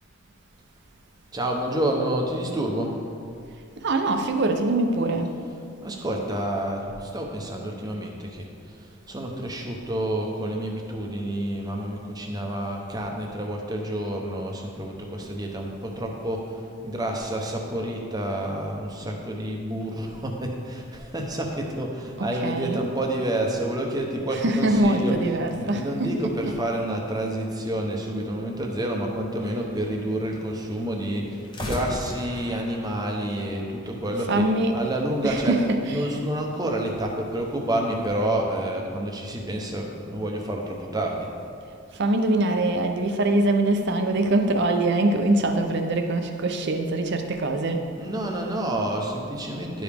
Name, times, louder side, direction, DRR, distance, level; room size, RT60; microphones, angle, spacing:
voice 1, 1.3-3.0 5.8-34.4 34.7-41.3 48.0-49.8, right 1 dB, 20° right, 1 dB, 0.7 m, -29 dB
voice 2, 3.8-5.3 22.2-22.8 24.3-26.1 26.4-26.5 34.3-34.8 35.2-36.1 42.0-47.9, right 2 dB, 55° right, 5 dB, 0.6 m, -23 dB
sound 1, 25.6-27.4 31.4-34.5, left 1 dB, 20° left, 0.8 m, -39 dB
11.5 x 4.9 x 3.5 m, 2.4 s
head